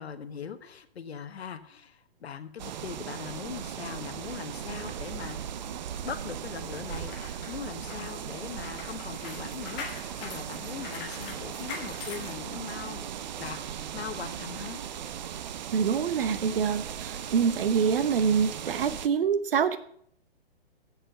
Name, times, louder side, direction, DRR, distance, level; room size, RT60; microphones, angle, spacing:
voice 1, 0.0-5.4 6.0-13.1 13.4-14.8, left 7 dB, 80° left, 11 dB, 1.1 m, -40 dB
sound 1, 2.6-19.1, right 9 dB, 45° right, 0.6 m, -38 dB
sound 2, 3.0-17.6, right 4 dB, 30° right, 1.6 m, -50 dB
sound 3, 6.7-13.0 13.5-13.6, left 5 dB, 5° left, 0.3 m, -43 dB
voice 2, 15.7-19.8, right 7 dB, 60° right, 13 dB, 0.9 m, -26 dB
8.0 x 6.7 x 6.8 m, 0.65 s
hypercardioid pair, 150°, 31 cm